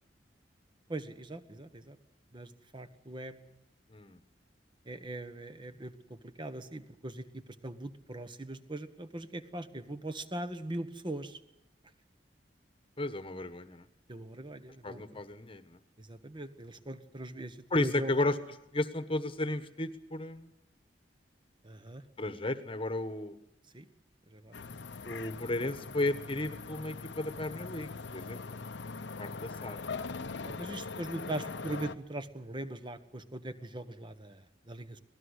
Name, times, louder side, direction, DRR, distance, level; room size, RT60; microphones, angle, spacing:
voice 1, 0.9-2.0 2.3-3.6 4.8-11.4 14.1-15.2 16.0-18.1 21.6-22.0 23.7-23.8 24.3-24.7 30.4-35.0, right 1 dB, 25° right, 10 dB, 1.3 m, -41 dB
voice 2, 3.9-4.2 13.0-13.8 14.8-15.8 17.7-18.3 18.7-20.5 22.2-23.3 25.0-28.4 28.8-29.8, left 2 dB, 30° left, 11 dB, 1.3 m, -34 dB
sound 1, 24.5-32.0, left 4 dB, 85° left, 0.8 m, -41 dB
24.5 x 18.5 x 8.2 m, 0.81 s
head